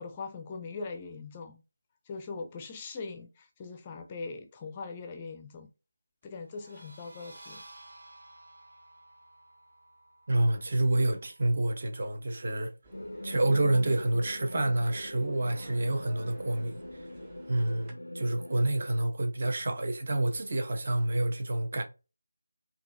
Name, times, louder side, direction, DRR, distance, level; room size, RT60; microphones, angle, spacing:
voice 1, 0.0-1.6 2.0-5.7 6.2-7.6, left 4 dB, 20° left, 0.5 m, -41 dB
sound 1, 6.5-11.9, right 2 dB, 70° right, 2.0 m, -54 dB
voice 2, 10.3-12.7 13.2-17.0 17.5-21.8, right 1 dB, 45° right, 1.0 m, -28 dB
sound 2, 12.8-17.9, right 2 dB, 20° right, 0.9 m, -54 dB
sound 3, 12.9-18.7, left 1 dB, 90° left, 0.4 m, -43 dB
5.2 x 2.7 x 2.7 m
figure-of-eight pair, 165°, 0 cm